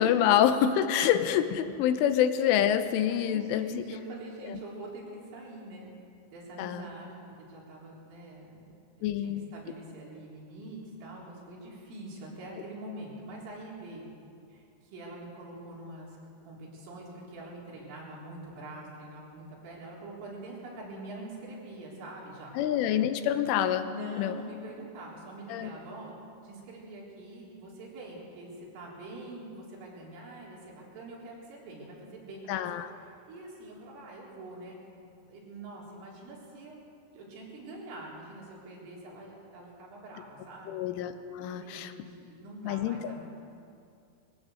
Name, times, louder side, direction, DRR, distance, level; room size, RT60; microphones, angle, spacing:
voice 1, 0.0-3.8 4.5-4.6 6.6-6.8 9.0-9.5 22.6-23.9 24.2-24.3 25.5-25.7 32.5-32.9 40.7-41.9 42.6-43.1, left 10 dB, 85° left, 9 dB, 3.4 m, -26 dB
voice 2, 3.3-5.9 6.3-7.2 7.5-8.7 9.0-14.1 14.5-16.2 16.4-22.6 23.9-26.2 26.4-32.7 33.0-34.8 35.3-36.8 37.1-40.8 41.4-43.2, right 1 dB, 85° right, -4 dB, 6.5 m, -44 dB
21.5 x 16.0 x 7.9 m, 2.5 s
omnidirectional pair, 5.6 m